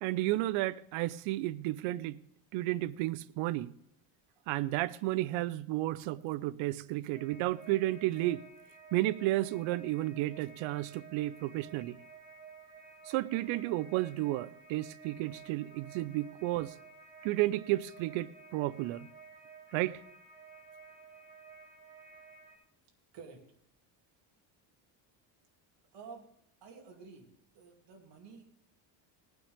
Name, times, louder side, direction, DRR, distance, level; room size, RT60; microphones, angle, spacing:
voice 1, 0.0-2.2 2.5-3.7 4.5-8.4 8.9-12.0 13.1-16.7 17.2-19.1 19.7-20.0, right 16 dB, 75° right, 0.6 m, -32 dB
sound 1, 7.1-22.6, right 5 dB, 15° right, 2.1 m, -53 dB
voice 2, 25.9-26.2 26.6-28.4, right 5 dB, 60° right, 2.7 m, -51 dB
19.0 x 9.2 x 3.5 m
cardioid pair, 140°, 47 cm